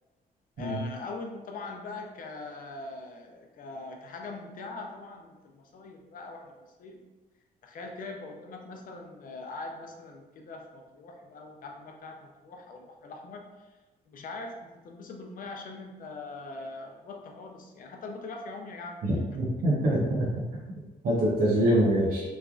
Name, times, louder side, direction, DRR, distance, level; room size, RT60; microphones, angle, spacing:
voice 1, 0.6-6.5 6.8-7.0 7.6-13.5 14.1-19.0 19.6-19.7, left 3 dB, 60° left, 2 dB, 0.5 m, -42 dB
voice 2, 19.0-20.3 21.0-22.2, right 1 dB, 65° right, -6 dB, 0.7 m, -25 dB
3.1 x 2.5 x 2.3 m, 1.2 s
wide cardioid pair, 150°, 16 cm